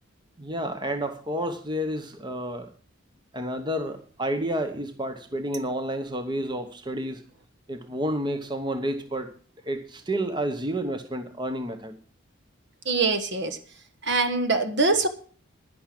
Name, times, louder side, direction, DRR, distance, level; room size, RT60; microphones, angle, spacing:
voice 1, 0.4-2.7 3.3-7.2 7.7-9.3 9.6-12.0, right 1 dB, 20° right, 7 dB, 1.0 m, -30 dB
voice 2, 12.9-13.6 14.1-15.1, right 3 dB, 55° right, 9 dB, 1.3 m, -23 dB
11.0 x 10.5 x 6.0 m, 0.42 s
head